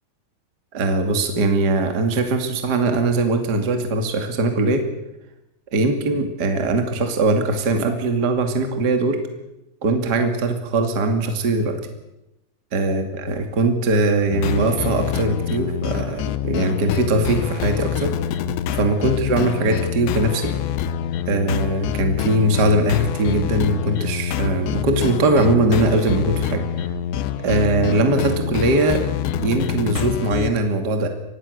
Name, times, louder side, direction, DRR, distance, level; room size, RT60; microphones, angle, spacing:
voice 1, 0.7-4.8 5.7-9.2 9.8-11.7 12.7-18.1 18.7-20.5 21.3-26.6 27.4-29.0 29.4-31.1, right 2 dB, 30° right, 5 dB, 2.2 m, -21 dB
sound 1, 14.3-30.5, left 9 dB, 85° left, 3.2 m, -26 dB
24.0 x 19.0 x 6.7 m, 0.93 s
omnidirectional pair, 5.0 m